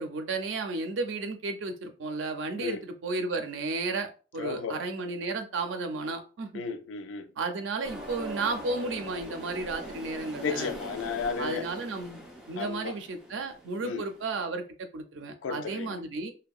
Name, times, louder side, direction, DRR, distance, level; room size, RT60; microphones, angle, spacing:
voice 1, 0.0-6.6 7.4-10.7 11.4-12.2 12.5-16.3, right 3 dB, 85° right, 0.5 m, -33 dB
voice 2, 4.4-4.8 6.5-7.3 10.4-11.7 12.6-12.9 13.8-14.0 15.4-16.0, left 5 dB, 85° left, 0.4 m, -33 dB
sound 1, 7.8-14.4, equal, 5° right, 0.4 m, -43 dB
2.6 x 2.1 x 2.3 m
head